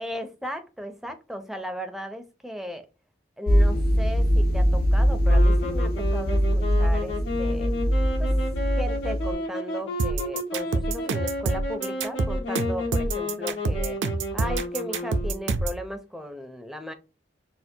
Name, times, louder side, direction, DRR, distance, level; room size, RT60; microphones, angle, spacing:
voice 1, 0.0-2.9 3.4-7.7 8.2-8.3 8.8-14.0 14.3-16.9, equal, ahead, 0.4 m, -36 dB
sound 1, 3.5-9.3, equal, 50° left, 0.5 m, -22 dB
sound 2, 5.3-15.7, left 1 dB, 90° left, 1.3 m, -32 dB
sound 3, 10.0-15.8, right 3 dB, 80° right, 0.5 m, -27 dB
4.3 x 2.1 x 2.7 m
head